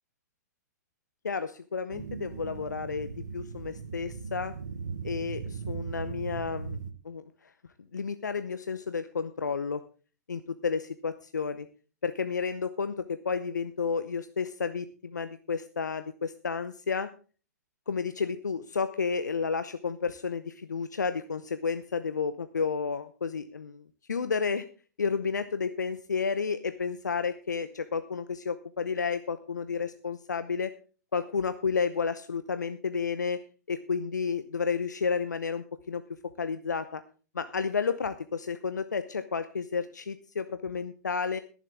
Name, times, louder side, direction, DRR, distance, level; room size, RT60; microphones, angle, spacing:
voice 1, 1.2-4.5 5.0-6.8 7.0-7.5 7.9-9.8 10.3-11.7 12.0-17.1 17.9-24.6 25.0-30.7 31.1-33.4 33.7-36.0 36.4-37.0 37.3-41.4, left 5 dB, 85° left, 11 dB, 0.7 m, -31 dB
sound 1, 1.9-6.9, right 5 dB, 80° right, 1.5 m, -38 dB
21.5 x 7.4 x 3.5 m, 0.37 s
hypercardioid pair, 120°, 9 cm